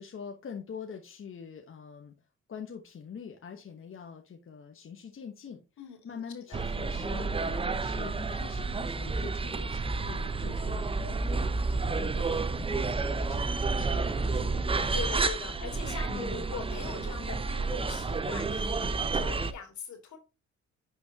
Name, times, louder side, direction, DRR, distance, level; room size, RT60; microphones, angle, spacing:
voice 1, 0.0-2.1 2.5-5.6 6.0-14.8 16.1-16.5, left 6 dB, 45° left, 1.1 m, -45 dB
voice 2, 5.8-6.7 14.6-20.2, left 6 dB, 70° left, 2.8 m, -42 dB
sound 1, 6.5-19.5, right 3 dB, 20° right, 0.6 m, -30 dB
11.0 x 4.4 x 2.9 m
cardioid pair, 90°, 30 cm